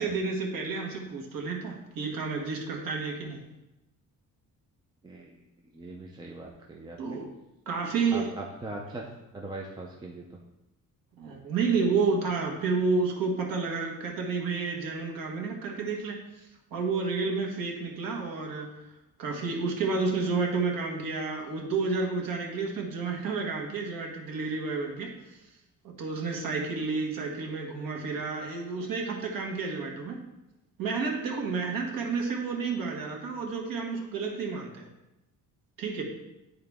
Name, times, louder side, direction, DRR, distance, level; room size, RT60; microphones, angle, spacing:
voice 1, 0.0-3.4 7.0-7.3 7.7-8.3 11.2-16.2 16.7-18.7 19.2-25.1 25.8-30.2 30.8-34.9 35.8-36.0, right 4 dB, 75° right, 1 dB, 1.5 m, -30 dB
voice 2, 5.0-5.4 5.7-7.2 8.1-9.0 9.3-10.2, right 2 dB, 15° right, -1 dB, 0.4 m, -40 dB
10.5 x 3.8 x 3.5 m, 0.94 s
cardioid pair, 175°, 35 cm